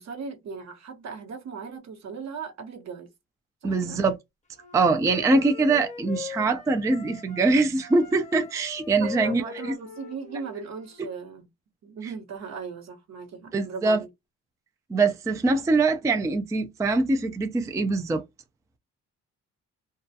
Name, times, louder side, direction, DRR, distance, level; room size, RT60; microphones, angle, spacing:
voice 1, 0.0-3.1 3.6-4.0 5.1-5.2 9.0-11.5 11.8-14.1, right 5 dB, 60° right, 1.0 m, -38 dB
voice 2, 3.6-4.1 4.7-9.7 13.5-14.0 14.9-18.2, right 3 dB, 10° right, 0.3 m, -23 dB
Wind instrument woodwind instrument, 4.5-7.5 7.8-11.1, left 7 dB, 25° left, 0.8 m, -41 dB
2.3 x 2.2 x 2.6 m
cardioid pair, 90°, 30 cm